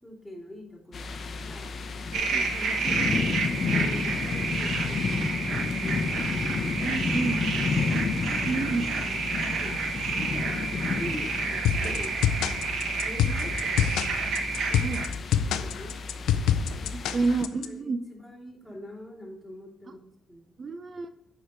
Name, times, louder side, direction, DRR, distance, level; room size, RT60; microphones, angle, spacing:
voice 1, 0.0-1.7 2.1-6.9 8.0-9.8 10.1-12.2 13.0-13.5 14.7-15.0 15.4-16.0 16.6-20.5, equal, 5° right, -3 dB, 2.7 m, -44 dB
sound 1, 0.9-17.4, left 4 dB, 50° left, 0.7 m, -31 dB
sound 2, 2.1-15.1, right 5 dB, 75° right, 1.1 m, -30 dB
voice 2, 6.8-7.4 7.9-8.0 8.5-8.8 14.8-15.0 16.9-18.0 20.6-21.1, right 4 dB, 40° right, 10 dB, 0.5 m, -29 dB
sound 3, 11.6-17.7, left 8 dB, 85° left, 0.5 m, -26 dB
8.0 x 4.9 x 4.4 m, 0.80 s
cardioid pair, 90°, 0 cm